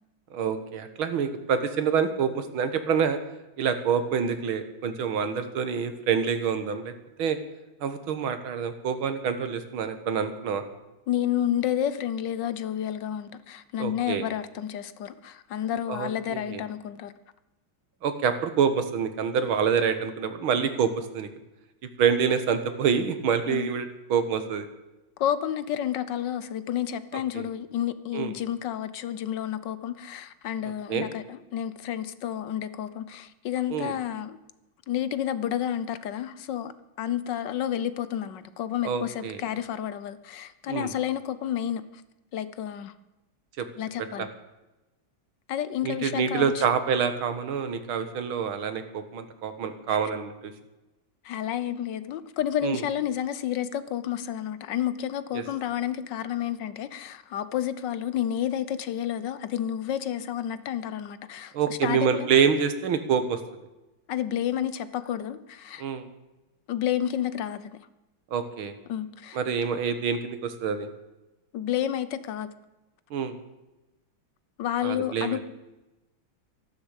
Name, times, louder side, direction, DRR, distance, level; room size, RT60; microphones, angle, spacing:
voice 1, 0.3-3.2 3.6-6.9 7.2-7.4 7.8-10.6 13.8-14.2 15.9-16.6 18.0-21.3 22.0-24.7 27.4-27.5 28.1-28.3 30.9-31.1 33.7-33.9 38.8-39.4 40.7-40.9 43.6-43.7 44.2-44.3 45.8-50.5 52.6-52.8 55.3-55.4 61.5-63.4 65.8-66.1 68.3-68.7 69.3-70.9 73.1-73.3 74.8-75.4, right 6 dB, 80° right, 9 dB, 2.2 m, -26 dB
voice 2, 11.1-17.1 23.5-23.7 25.2-34.4 34.9-36.7 37.0-42.0 42.3-42.9 43.8-44.3 45.5-46.6 49.9-50.0 51.2-62.3 64.1-65.8 66.7-67.7 68.9-69.4 71.5-72.5 74.6-75.4, left 10 dB, 65° left, 14 dB, 1.4 m, -30 dB
13.5 x 11.5 x 8.2 m, 1.0 s
omnidirectional pair, 2.2 m